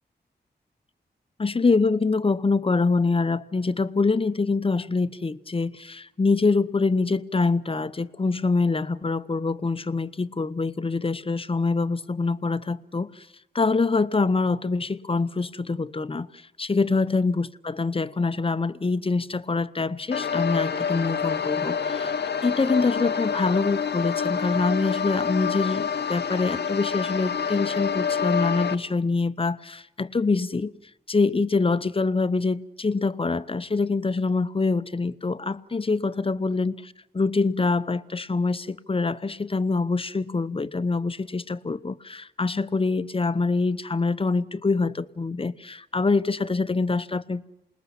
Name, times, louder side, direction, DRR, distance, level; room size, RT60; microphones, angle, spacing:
voice 1, 1.4-13.3 13.5-16.3 16.6-22.1 22.4-30.7 31.1-36.7 37.1-47.4, left 3 dB, 30° left, 0.8 m, -25 dB
sound 1, 20.1-28.7, left 6 dB, 70° left, 1.0 m, -27 dB
28.0 x 20.0 x 7.2 m
cardioid pair, 55°, 18 cm